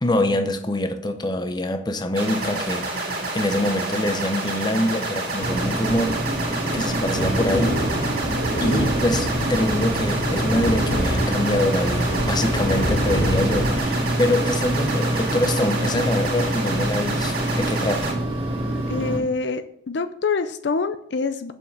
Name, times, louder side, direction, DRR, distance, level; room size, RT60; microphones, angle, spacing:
voice 1, 0.0-6.2 6.7-7.8 8.6-18.2, left 1 dB, 20° left, 0.7 m, -25 dB
sound 1, 2.2-18.1, right 2 dB, 50° right, 2.2 m, -29 dB
sound 2, 5.4-19.2, right 1 dB, 30° right, 2.5 m, -26 dB
sound 3, 7.1-13.8, equal, 90° left, 3.0 m, -27 dB
voice 2, 18.9-21.5, left 4 dB, 60° left, 0.5 m, -25 dB
7.1 x 5.8 x 6.6 m
head